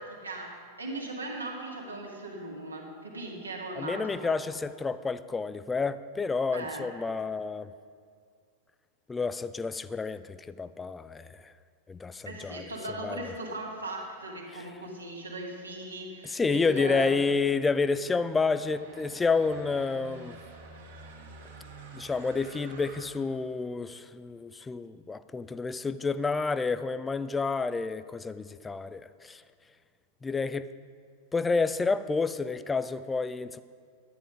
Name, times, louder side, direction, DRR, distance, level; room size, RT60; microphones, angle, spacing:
voice 1, 0.0-4.4 6.5-6.9 12.3-17.1, right 2 dB, 80° right, -1 dB, 1.9 m, -38 dB
voice 2, 3.8-7.7 9.1-11.5 11.9-12.6 13.0-13.2 14.5-14.7 16.2-20.4 21.9-29.4 30.2-30.7 31.3-33.6, left 4 dB, 15° left, 14 dB, 0.4 m, -29 dB
sound 1, 17.6-23.0, right 3 dB, 60° right, 1.7 m, -48 dB
11.5 x 9.9 x 5.0 m, 2.1 s
figure-of-eight pair, 90°, 0 cm